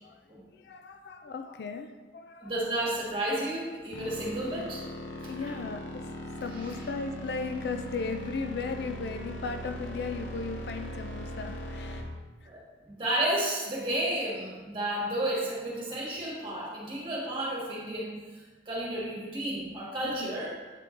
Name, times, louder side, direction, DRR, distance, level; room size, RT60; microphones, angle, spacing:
voice 1, 0.0-2.6 5.0-12.1 12.4-12.5 15.9-16.1 20.0-20.4, left 4 dB, 60° left, 7 dB, 0.4 m, -37 dB
voice 2, 2.4-4.8 5.2-5.5 12.4-20.5, right 1 dB, 25° right, -5 dB, 1.7 m, -32 dB
sound 1, 3.9-12.0, equal, 80° left, 1.0 m, -40 dB
8.3 x 3.7 x 3.7 m, 1.3 s
head